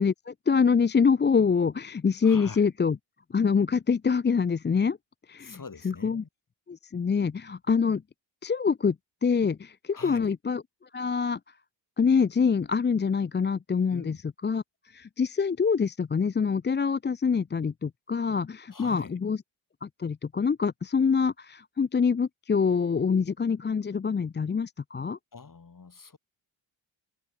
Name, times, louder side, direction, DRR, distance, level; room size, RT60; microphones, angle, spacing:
voice 1, 0.0-3.0 3.3-5.0 5.3-5.6 5.8-6.2 6.7-8.0 8.4-9.0 9.2-10.6 10.9-11.4 12.0-14.1 14.4-14.6 14.9-19.4 19.8-25.2, left 5 dB, 25° left, 0.5 m, -25 dB
voice 2, 2.2-2.7 5.4-6.3 9.9-10.3 13.9-14.2 18.7-19.1 25.3-26.2, left 4 dB, 40° left, 5.1 m, -44 dB
cardioid pair, 65°, 48 cm